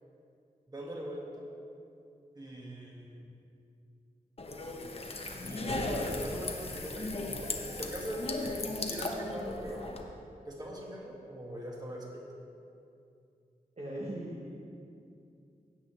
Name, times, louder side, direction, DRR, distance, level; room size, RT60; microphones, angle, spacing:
voice 1, 0.7-1.4 2.3-3.3 5.4-8.5 8.8-9.8 10.5-12.2, equal, 25° right, -2 dB, 1.9 m, -41 dB
sound 1, 4.4-10.0, left 2 dB, 40° left, 0.9 m, -36 dB
voice 2, 13.8-14.5, right 1 dB, 45° right, -5 dB, 1.2 m, -39 dB
16.5 x 8.0 x 3.4 m, 2.5 s
wide cardioid pair, 125°, 15 cm